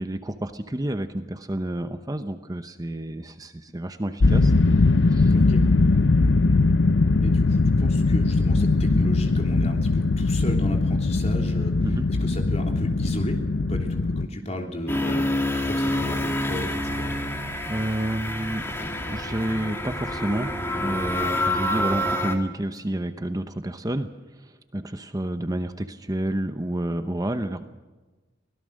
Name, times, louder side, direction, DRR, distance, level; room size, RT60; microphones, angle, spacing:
voice 1, 0.0-5.3 11.8-12.0 17.7-18.7 19.1-27.6, right 1 dB, 20° right, 9 dB, 0.8 m, -30 dB
sound 1, 4.2-14.3, left 3 dB, 90° left, 0.7 m, -20 dB
voice 2, 7.2-11.7 12.2-17.1, equal, 35° left, 2 dB, 3.3 m, -33 dB
sound 2, 14.9-22.4, left 1 dB, 15° left, 2.2 m, -27 dB
24.0 x 17.5 x 6.5 m, 1.2 s
head